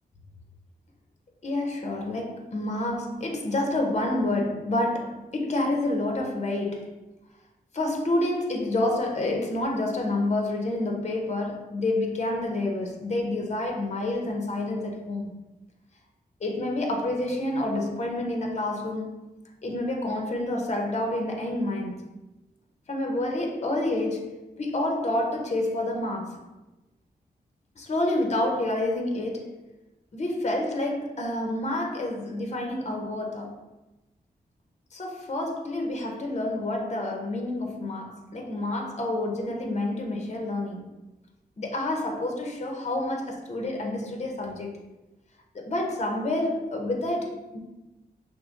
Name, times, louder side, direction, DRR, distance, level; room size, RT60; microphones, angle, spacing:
voice 1, 1.4-7.0 7.7-15.3 16.4-19.1 19.6-22.0 22.9-26.4 27.8-29.6 30.1-33.7 34.9-40.9 41.6-44.8 45.5-47.6, left 1 dB, 40° left, 1 dB, 0.8 m, -28 dB
6.1 x 2.2 x 2.6 m, 1.0 s
cardioid pair, 60°, 17 cm